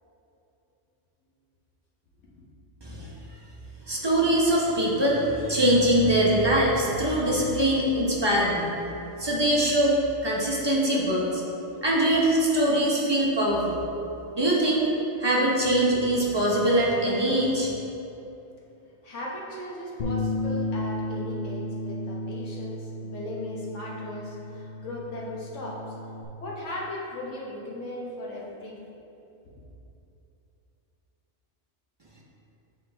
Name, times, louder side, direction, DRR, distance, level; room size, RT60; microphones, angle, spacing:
voice 1, 3.9-8.7 9.2-10.0 10.2-11.4 11.8-13.8 14.3-14.8 15.2-17.7, right 1 dB, 25° right, -5 dB, 0.8 m, -23 dB
voice 2, 19.0-26.0 26.4-28.9, left 1 dB, 90° left, -4 dB, 1.4 m, -37 dB
Bass guitar, 20.0-26.2, left 1 dB, 50° left, 0.6 m, -33 dB
7.6 x 4.3 x 3.4 m, 2.8 s
omnidirectional pair, 1.2 m